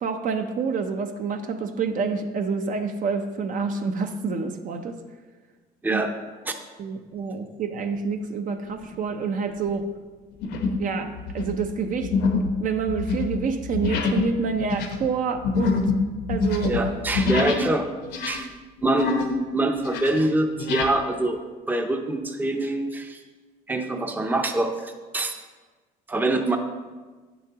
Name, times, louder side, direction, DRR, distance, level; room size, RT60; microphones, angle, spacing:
voice 1, 0.0-5.0 5.9-6.0 6.8-9.8 10.8-12.1 12.6-15.8 16.3-16.9, right 5 dB, 50° right, 6 dB, 0.6 m, -27 dB
sound 1, 8.7-9.1 9.6-9.8 10.4-10.9 11.2-17.7 18.0-19.4 19.7-20.9, left 4 dB, 75° left, 1.0 m, -26 dB
voice 2, 16.6-17.9 18.2-18.5 18.8-19.1 19.5-21.4 21.7-23.2 23.7-25.4 26.1-26.6, right 2 dB, 10° right, 5 dB, 0.6 m, -24 dB
9.0 x 7.0 x 2.9 m, 1.3 s
cardioid pair, 110°, 17 cm